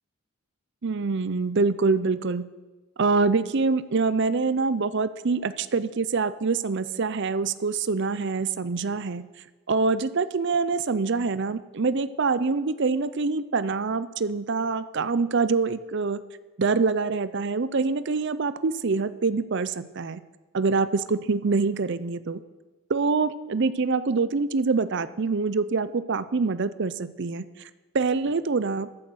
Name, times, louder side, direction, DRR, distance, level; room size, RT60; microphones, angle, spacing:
voice 1, 0.8-2.4 3.0-9.2 9.7-16.2 16.6-20.2 20.5-22.4 22.9-27.5 27.9-28.9, right 4 dB, 55° right, 15 dB, 0.6 m, -25 dB
14.0 x 8.1 x 6.3 m, 1.2 s
head